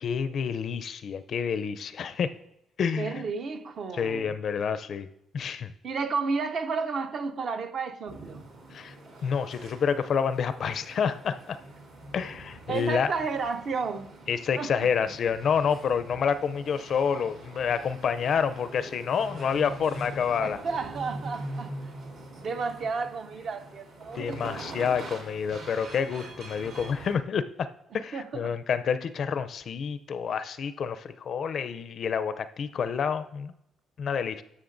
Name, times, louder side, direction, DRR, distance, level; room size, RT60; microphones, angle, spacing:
voice 1, 0.0-2.3 2.8-3.2 4.0-5.1 5.3-5.7 8.7-9.0 9.2-11.6 12.1-13.1 14.3-20.6 24.1-27.7 27.9-33.5 34.0-34.4, left 6 dB, 55° left, 0.4 m, -28 dB
voice 2, 3.0-4.3 5.8-8.4 12.7-14.1 14.5-14.7 15.0-15.1 20.4-21.7 22.4-24.4 28.1-28.5, right 4 dB, 50° right, 0.6 m, -32 dB
sound 1, 8.1-27.1, right 1 dB, 90° right, 1.7 m, -43 dB
13.0 x 6.4 x 2.6 m
cardioid pair, 115°, 0 cm